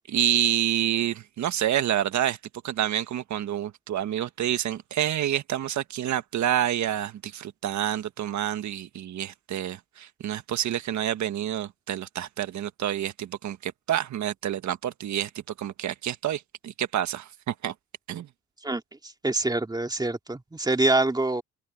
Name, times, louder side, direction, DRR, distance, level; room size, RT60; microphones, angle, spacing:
voice 1, 0.1-2.4 2.6-15.3 15.6-17.7 18.1-18.3, right 11 dB, 70° right, 1.5 m, -28 dB
voice 2, 19.2-21.4, right 2 dB, 15° right, 2.6 m, -25 dB
open air
cardioid pair, 90°, 30 cm